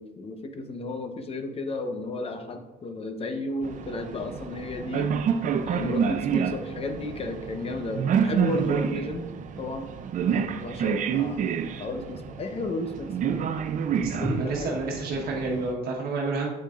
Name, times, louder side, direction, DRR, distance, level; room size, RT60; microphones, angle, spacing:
voice 1, 0.0-5.1 5.6-9.3 9.6-9.9 10.3-13.5 14.2-14.7, left 2 dB, 35° left, 6 dB, 0.9 m, -33 dB
sound 1, 3.6-15.7, right 7 dB, 50° right, 0.5 m, -29 dB
voice 2, 14.0-16.5, right 3 dB, 65° right, -2 dB, 1.3 m, -29 dB
8.0 x 6.6 x 2.5 m, 1.1 s
cardioid pair, 110°, 17 cm